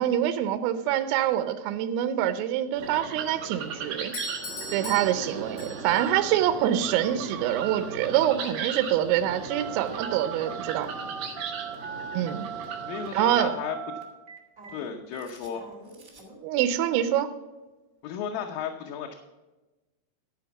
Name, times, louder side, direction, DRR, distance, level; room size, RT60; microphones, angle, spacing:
voice 1, 0.0-4.1 4.7-10.9 12.1-12.5 13.1-13.5 16.4-17.3, right 11 dB, 85° right, 10 dB, 3.3 m, -25 dB
sound 1, 2.8-13.4, right 6 dB, 65° right, 2.3 m, -37 dB
Doorbell, 4.1-6.1, left 1 dB, 65° left, 1.6 m, -39 dB
Telephone, 9.5-16.4, right 7 dB, 30° right, 1.5 m, -39 dB
voice 2, 12.8-13.8 14.7-15.6 18.0-19.2, left 8 dB, 80° left, 2 dB, 3.5 m, -34 dB
14.0 x 5.1 x 7.1 m, 1.1 s
omnidirectional pair, 5.9 m